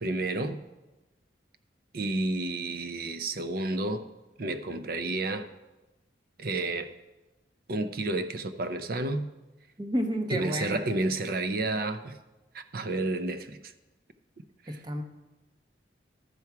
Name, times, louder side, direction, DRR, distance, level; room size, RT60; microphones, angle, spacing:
voice 1, 0.0-0.6 1.9-4.0 4.4-5.5 6.4-6.9 7.7-9.3 10.3-12.2 12.5-13.6 14.7-14.8, right 2 dB, 50° right, 10 dB, 0.5 m, -30 dB
voice 2, 9.8-10.8 14.7-15.0, equal, 25° right, 5 dB, 0.8 m, -31 dB
12.0 x 4.7 x 5.7 m, 1.1 s
head